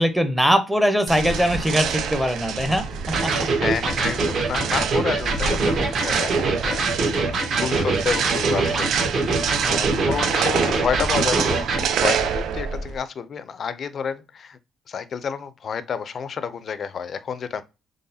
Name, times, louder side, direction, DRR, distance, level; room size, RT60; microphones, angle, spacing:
voice 1, 0.0-2.8 3.2-3.3, equal, 5° right, 0.6 m, -21 dB
sound 1, 1.1-13.0, right 7 dB, 80° right, 0.5 m, -27 dB
Electric guitar, 3.1-11.9, right 3 dB, 60° right, 1.3 m, -24 dB
voice 2, 3.6-6.8 7.1-8.9 9.2-14.6 14.9-17.6, left 6 dB, 55° left, 0.5 m, -30 dB
3.9 x 3.2 x 2.7 m
cardioid pair, 90°, 0 cm